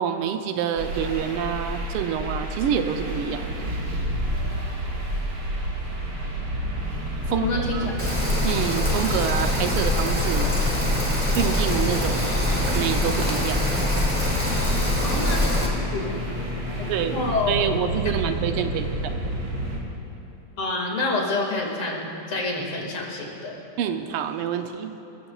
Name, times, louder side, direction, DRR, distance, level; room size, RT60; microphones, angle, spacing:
voice 1, 0.0-3.7 7.3-7.4 7.7-7.9 8.4-10.5 11.4-12.4 12.7-13.8 16.9-17.2 17.5-19.4 23.8-24.9, right 8 dB, 85° right, 7 dB, 1.6 m, -27 dB
sound 1, 0.8-19.8, equal, 55° right, 2.3 m, -29 dB
voice 2, 7.3-7.9 15.0-16.2 17.0-17.5 20.6-23.6, left 2 dB, 80° left, -1 dB, 3.0 m, -28 dB
Rain, 8.0-15.7, left 1 dB, 5° right, 2.0 m, -24 dB
27.0 x 14.0 x 2.4 m, 3.0 s
omnidirectional pair, 2.4 m